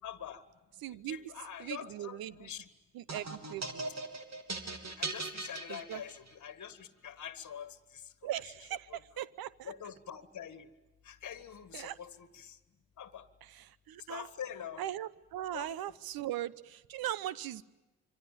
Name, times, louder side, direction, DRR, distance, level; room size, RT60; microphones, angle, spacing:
voice 1, 0.0-0.4 0.9-2.7 5.0-8.3 9.6-10.7 11.0-12.6 13.0-13.3 14.1-14.8 15.5-15.7, left 8 dB, 45° left, 11 dB, 1.7 m, -45 dB
voice 2, 0.8-1.3 1.6-2.5 2.9-3.9 5.7-6.0 8.2-9.7 11.7-12.0 13.4-14.3 14.8-17.6, right 12 dB, 60° right, 19 dB, 0.9 m, -39 dB
sound 1, 3.1-6.5, right 3 dB, 40° right, 3.2 m, -40 dB
26.5 x 24.0 x 7.6 m, 1.0 s
hypercardioid pair, 45°, 41 cm